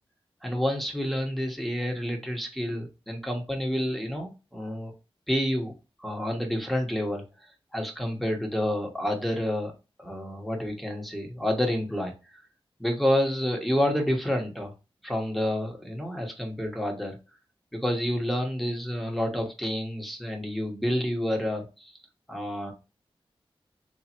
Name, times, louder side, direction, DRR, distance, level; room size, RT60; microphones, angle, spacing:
voice 1, 0.4-4.9 5.3-5.7 6.0-9.7 10.0-12.4 12.8-14.7 15.0-17.2 17.7-21.9 22.3-22.7, equal, ahead, 2 dB, 1.2 m, -29 dB
3.3 x 3.0 x 4.2 m, 0.30 s
wide cardioid pair, 65°, 10 cm